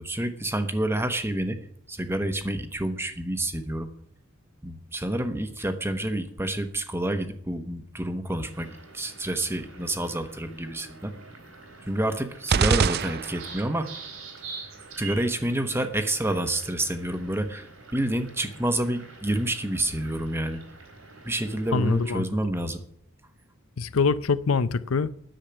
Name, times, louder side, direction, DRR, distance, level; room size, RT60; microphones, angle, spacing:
voice 1, 0.0-1.6 1.9-3.9 4.6-11.1 11.9-13.9 15.0-20.6 21.2-22.8, right 1 dB, 10° right, 1.1 m, -28 dB
sound 1, 8.5-22.1, right 4 dB, 75° right, 3.7 m, -46 dB
sound 2, 12.5-13.8, right 6 dB, 50° right, 0.4 m, -24 dB
voice 2, 21.7-22.3 23.8-25.1, left 4 dB, 70° left, 0.6 m, -24 dB
10.5 x 7.4 x 9.5 m
head